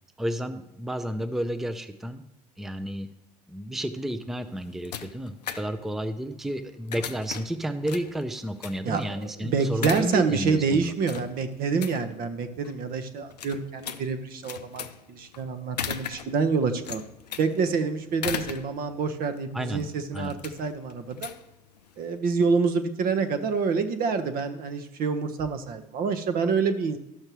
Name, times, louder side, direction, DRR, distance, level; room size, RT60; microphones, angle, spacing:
voice 1, 0.2-2.2 2.6-3.1 3.5-10.9 19.5-19.9 20.1-20.4, right 1 dB, ahead, 10 dB, 0.5 m, -31 dB
sound 1, 4.2-22.2, left 8 dB, 85° left, 0.4 m, -39 dB
voice 2, 9.4-17.0 17.4-21.3 22.0-27.0, right 5 dB, 45° right, 8 dB, 0.8 m, -27 dB
12.5 x 6.5 x 3.0 m, 0.86 s
figure-of-eight pair, 65°, 20 cm